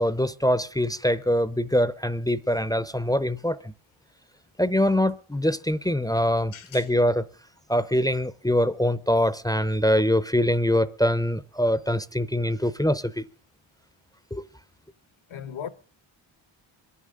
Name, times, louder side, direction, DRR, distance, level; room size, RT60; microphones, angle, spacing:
voice 1, 0.0-3.7 4.6-7.3 7.7-13.2 14.3-14.4, equal, 10° left, 0.6 m, -24 dB
voice 2, 6.5-6.8 15.3-15.7, left 8 dB, 75° left, 1.2 m, -37 dB
26.0 x 11.0 x 3.8 m
cardioid pair, 75°, 49 cm